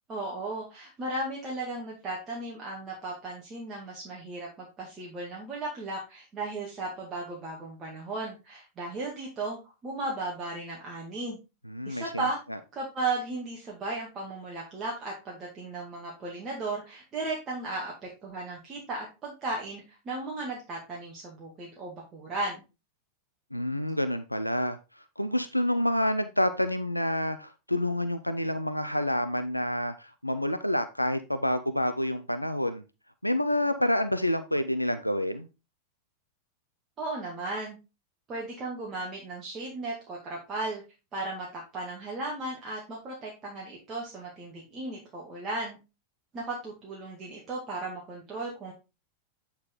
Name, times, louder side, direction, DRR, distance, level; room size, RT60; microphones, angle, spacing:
voice 1, 0.1-11.4 11.9-12.4 12.7-22.6 37.0-37.8 38.3-40.8 41.1-45.8 46.3-48.7, right 2 dB, 25° right, 2.0 m, -35 dB
voice 2, 11.7-12.2 23.5-24.8 25.2-32.8 33.2-35.5, left 1 dB, 90° left, 0.5 m, -28 dB
8.6 x 4.4 x 3.7 m
figure-of-eight pair, 90°, 0 cm